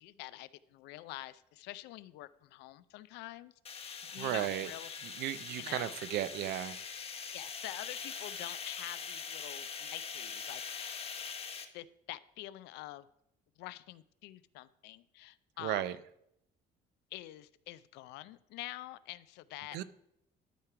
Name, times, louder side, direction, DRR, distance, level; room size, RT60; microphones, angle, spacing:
voice 1, 0.0-5.0 5.3-6.0 7.3-11.0 11.7-13.1 13.6-16.0 17.1-19.8, left 16 dB, 90° left, 0.4 m, -47 dB
sound 1, 3.6-11.6, left 6 dB, 35° left, 0.9 m, -43 dB
voice 2, 4.0-4.7 5.0-6.8 15.6-16.0 19.7-19.8, right 13 dB, 80° right, 0.5 m, -35 dB
12.0 x 4.5 x 4.8 m
cardioid pair, 110°, 17 cm